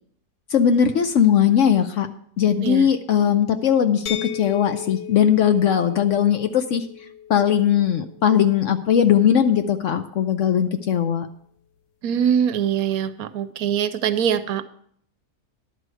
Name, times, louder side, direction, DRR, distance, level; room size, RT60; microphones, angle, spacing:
voice 1, 0.5-2.1 2.4-6.9 7.3-11.3, left 8 dB, 65° left, 8 dB, 0.8 m, -19 dB
sound 1, 4.1-9.8, left 9 dB, 90° left, 1.2 m, -37 dB
voice 2, 12.0-14.6, right 8 dB, 75° right, 12 dB, 1.0 m, -23 dB
11.0 x 4.8 x 7.6 m, 0.66 s
omnidirectional pair, 1.7 m